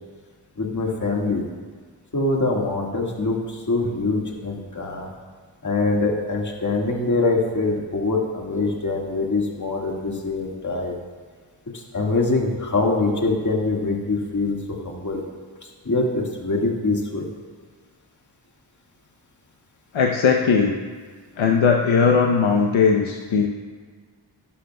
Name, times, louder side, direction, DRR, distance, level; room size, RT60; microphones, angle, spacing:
voice 1, 0.6-1.4 2.1-5.1 5.6-10.9 11.9-14.6 14.8-15.2 15.8-17.3, left 3 dB, 40° left, -1 dB, 1.7 m, -24 dB
voice 2, 19.9-20.7 21.4-23.5, left 5 dB, 75° left, 1 dB, 0.8 m, -18 dB
11.5 x 11.5 x 2.3 m, 1.5 s
cardioid pair, 55°, 48 cm